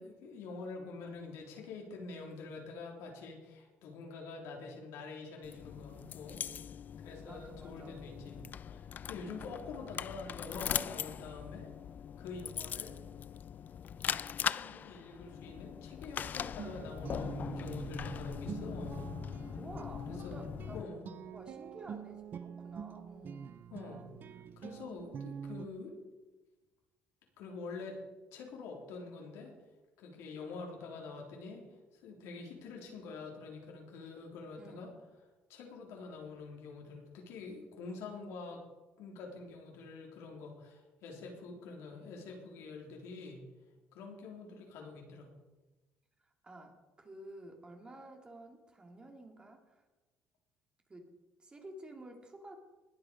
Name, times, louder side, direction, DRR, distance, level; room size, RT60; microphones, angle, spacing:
voice 1, 0.0-6.4 7.0-11.7 12.2-13.0 14.4-19.1 20.1-20.4 20.7-21.1 23.7-26.0 27.4-28.0 28.3-29.5 30.0-31.7 32.0-34.9 35.5-38.6 39.0-43.4 43.9-45.4, left 4 dB, 85° left, 0 dB, 3.4 m, -46 dB
sound 1, 5.4-20.8, left 8 dB, 40° left, 0.4 m, -41 dB
voice 2, 7.3-8.0 19.6-20.8 21.3-23.5 34.6-34.9 46.2-49.8 50.9-51.1 51.4-52.6, right 1 dB, 20° right, 3 dB, 2.3 m, -51 dB
Guitar, 16.6-25.7, right 7 dB, 45° right, 0.6 m, -45 dB
20.5 x 7.8 x 5.1 m, 1.1 s
cardioid pair, 120°, 5 cm